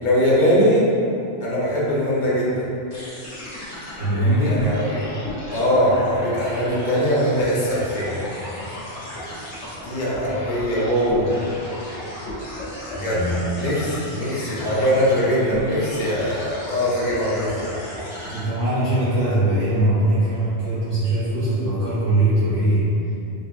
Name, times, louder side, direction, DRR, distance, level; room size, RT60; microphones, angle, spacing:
voice 1, 0.0-0.8 1.4-2.6 4.4-5.0 5.5-8.2 9.8-11.4 12.9-13.2 13.6-17.7, equal, 50° left, -7 dB, 0.9 m, -21 dB
sound 1, 2.9-18.4, left 1 dB, 80° left, 1.3 m, -35 dB
voice 2, 3.9-4.7 13.1-13.4 18.3-22.8, right 1 dB, 80° right, -14 dB, 1.4 m, -21 dB
3.6 x 3.4 x 2.4 m, 2.8 s
omnidirectional pair, 1.1 m